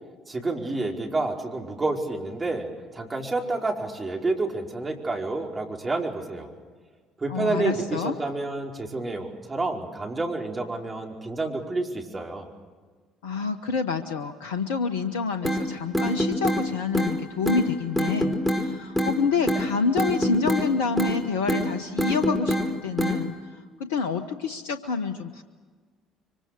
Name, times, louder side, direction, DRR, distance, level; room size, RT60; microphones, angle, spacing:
voice 1, 0.3-2.7 2.9-6.5 7.2-12.5, right 2 dB, 25° right, 1 dB, 5.0 m, -29 dB
voice 2, 7.3-8.1 13.2-23.3 23.8-25.4, left 5 dB, 80° left, 9 dB, 1.0 m, -27 dB
sound 1, 15.4-15.6 15.9-16.6 16.9-17.1 17.5-17.6 18.0-18.6 19.0-19.2 19.5-19.6 20.0-20.7 21.0-21.2 21.5-21.7 22.0-22.7 23.0-23.2, equal, 5° left, 4.7 m, -24 dB
25.0 x 24.5 x 6.8 m, 1.5 s
hypercardioid pair, 55°, 0 cm